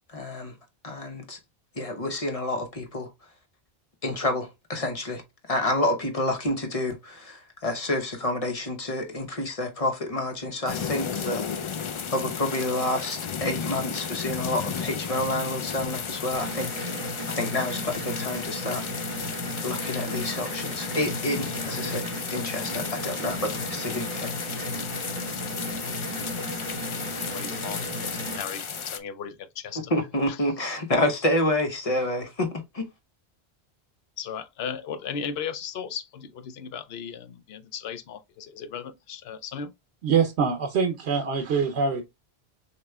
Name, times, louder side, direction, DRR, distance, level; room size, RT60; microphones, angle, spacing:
voice 1, 0.1-0.5 0.8-1.4 1.8-3.1 4.0-5.2 5.5-11.5 12.1-16.8 17.3-18.8 19.6-24.7 29.9-32.8, left 1 dB, 35° left, 0.9 m, -29 dB
sound 1, 10.7-29.0, left 6 dB, 55° left, 0.3 m, -34 dB
sound 2, 16.3-28.4, equal, 20° right, 1.3 m, -35 dB
voice 2, 27.1-29.9 30.3-30.5 34.2-39.7, left 7 dB, 75° left, 0.8 m, -36 dB
voice 3, 40.0-42.0, right 6 dB, 90° right, 1.0 m, -24 dB
6.5 x 3.0 x 2.2 m
omnidirectional pair, 1.1 m